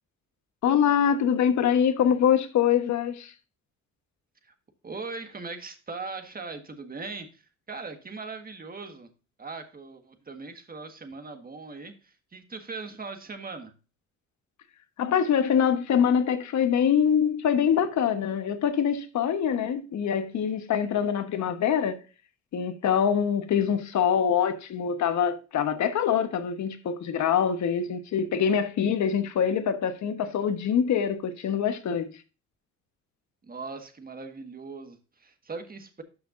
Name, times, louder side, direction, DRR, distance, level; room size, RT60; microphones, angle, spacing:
voice 1, 0.6-3.3 15.0-22.0 22.5-32.1, left 8 dB, 65° left, 1.2 m, -24 dB
voice 2, 4.8-9.1 9.4-13.7 33.4-36.0, right 4 dB, 30° right, 1.6 m, -40 dB
12.0 x 5.8 x 2.6 m
cardioid pair, 90°, 30 cm